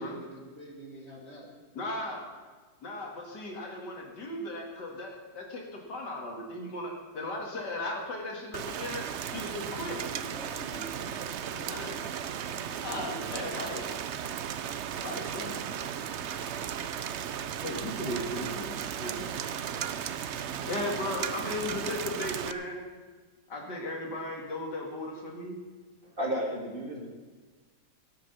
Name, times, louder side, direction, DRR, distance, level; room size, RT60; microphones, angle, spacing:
voice 1, 0.0-1.6 9.9-12.2 12.5-13.8, right 1 dB, 35° left, 0 dB, 2.1 m, -46 dB
voice 2, 1.7-2.3 2.8-9.0 9.3-10.0 11.7-12.0 12.8-13.8 15.0-15.6 17.6-19.3 20.6-22.8 23.5-25.6, left 1 dB, 65° left, 0 dB, 2.7 m, -36 dB
Rain, 8.5-22.5, right 8 dB, 90° right, 0.6 m, -35 dB
voice 3, 26.0-27.1, equal, 30° right, -1 dB, 2.4 m, -33 dB
17.5 x 7.0 x 6.9 m, 1.4 s
omnidirectional pair, 2.0 m